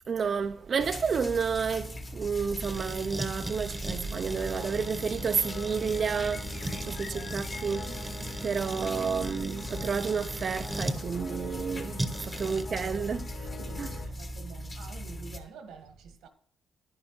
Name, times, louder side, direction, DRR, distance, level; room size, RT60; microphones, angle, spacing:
voice 1, 0.1-13.3 13.8-14.0, right 6 dB, 45° right, 0.4 m, -31 dB
sound 1, 0.8-15.4, left 1 dB, 30° left, 1.3 m, -40 dB
sound 2, 2.6-11.0 12.0-12.6, right 1 dB, 10° right, 0.9 m, -39 dB
sound 3, 4.3-14.1, left 5 dB, 50° left, 0.7 m, -44 dB
voice 2, 6.8-7.5 12.3-13.2 13.6-16.3, right 6 dB, 90° right, 1.3 m, -49 dB
10.0 x 9.7 x 3.0 m
cardioid pair, 90°, 0 cm